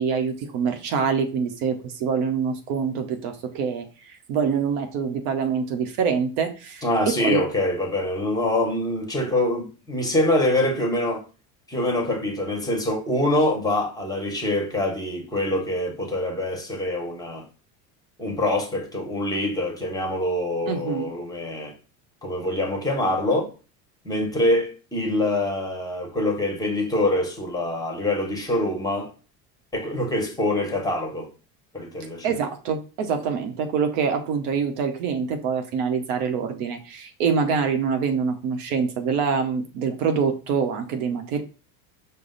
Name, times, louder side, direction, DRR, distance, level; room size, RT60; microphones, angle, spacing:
voice 1, 0.0-6.9 7.2-7.4 20.7-21.1 32.2-41.4, right 6 dB, 65° right, 0.9 m, -25 dB
voice 2, 6.8-11.2 11.7-17.5 18.2-21.7 22.2-23.5 24.0-29.1 29.7-31.3 31.7-32.4, left 1 dB, 10° left, 1.3 m, -25 dB
4.9 x 2.2 x 4.0 m
hypercardioid pair, 90°, 45 cm